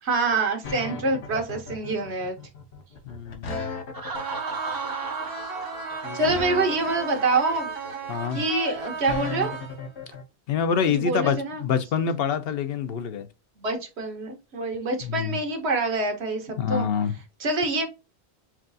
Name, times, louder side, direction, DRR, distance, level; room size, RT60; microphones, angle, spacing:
voice 1, 0.0-2.4 6.1-7.7 8.3-9.5 10.9-11.6 13.6-16.9 17.4-17.9, right 3 dB, 85° right, 1.3 m, -26 dB
sound 1, 0.6-10.2, left 5 dB, 85° left, 1.1 m, -36 dB
voice 2, 3.1-3.7 6.0-6.2 8.1-8.4 10.5-13.3 15.0-15.4 16.6-17.1, left 7 dB, 70° left, 0.8 m, -26 dB
Laughter, 3.9-7.6, right 4 dB, 30° right, 0.4 m, -36 dB
sound 2, 4.1-10.1, right 5 dB, 65° right, 1.2 m, -35 dB
5.9 x 2.3 x 2.6 m
omnidirectional pair, 1.1 m